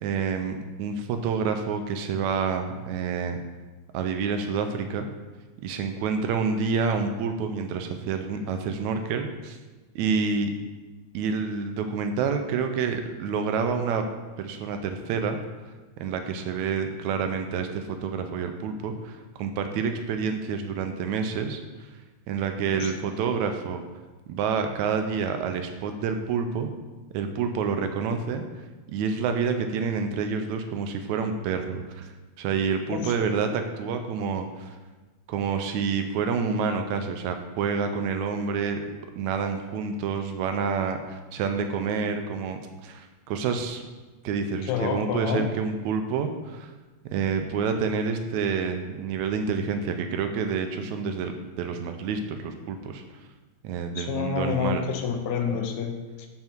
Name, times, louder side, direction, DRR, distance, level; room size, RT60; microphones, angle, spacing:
voice 1, 0.0-3.4 3.9-5.1 5.6-9.6 10.0-10.5 11.1-14.1 14.4-15.4 16.0-21.6 22.3-23.8 24.3-26.7 27.1-28.4 28.9-32.1 32.4-34.8 35.3-38.8 39.2-43.8 44.2-46.7 47.1-53.0 53.6-54.8 55.5-55.6, right 5 dB, 80° right, 6 dB, 1.9 m, -28 dB
voice 2, 44.7-45.5 54.0-56.3, left 6 dB, 75° left, 4 dB, 2.1 m, -28 dB
7.7 x 5.6 x 4.5 m, 1.2 s
omnidirectional pair, 3.4 m